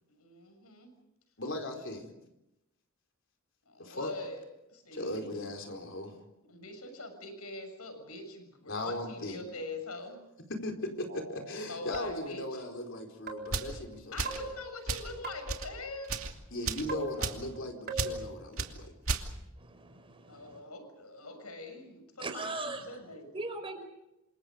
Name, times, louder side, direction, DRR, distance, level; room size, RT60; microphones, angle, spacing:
voice 1, 0.1-0.9 1.7-1.8 3.7-4.4 4.7-5.2 6.5-10.2 11.7-12.6 14.1-16.2 20.3-23.3, left 2 dB, 90° left, 7 dB, 7.0 m, -43 dB
voice 2, 1.4-2.1 3.8-4.1 4.9-6.1 8.7-9.4 10.5-14.4 16.5-18.9, left 1 dB, 60° left, 3 dB, 4.4 m, -38 dB
sound 1, 11.1-11.5 11.9-12.5 13.3-13.7 14.3-15.7 16.9-17.6 17.9-18.3, right 2 dB, 50° right, 4.2 m, -41 dB
sound 2, 13.5-13.7 14.2-14.5 14.9-15.1 15.5-15.7 16.0-16.3 16.7-16.9 17.2-17.4 18.0-18.2 18.6-18.7 19.1-19.3, right 4 dB, 65° right, 2.6 m, -33 dB
voice 3, 19.6-20.6 22.2-23.0 23.3-23.8, right 2 dB, 25° right, 5 dB, 5.3 m, -40 dB
29.0 x 26.5 x 5.2 m, 0.90 s
head